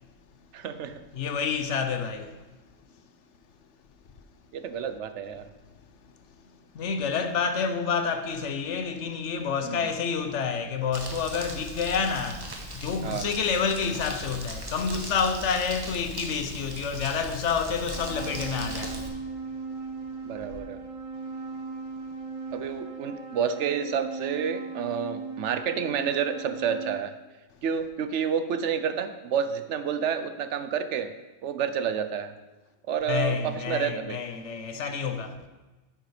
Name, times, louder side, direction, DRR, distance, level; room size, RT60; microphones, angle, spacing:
voice 1, 0.5-1.0 4.5-5.5 9.6-9.9 13.0-13.3 20.2-20.8 22.5-27.1 27.6-31.1 31.4-32.3 32.9-34.2, right 7 dB, 85° right, 1.0 m, -29 dB
voice 2, 1.1-2.4 6.7-19.2 33.1-35.4, left 6 dB, 85° left, 1.1 m, -29 dB
Crumpling crinkling, 10.9-19.1, right 1 dB, 20° right, 1.2 m, -39 dB
sound 1, 17.9-27.0, right 4 dB, 40° right, 0.5 m, -38 dB
9.2 x 6.7 x 4.9 m
omnidirectional pair, 1.2 m